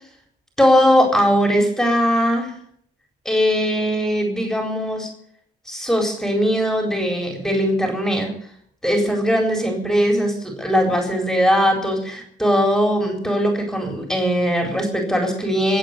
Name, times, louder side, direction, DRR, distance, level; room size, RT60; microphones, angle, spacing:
voice 1, 0.6-2.5 3.2-5.1 5.7-8.3 8.8-15.8, equal, 5° left, 3 dB, 4.2 m, -20 dB
23.0 x 8.4 x 6.8 m, 0.65 s
cardioid pair, 110°, 17 cm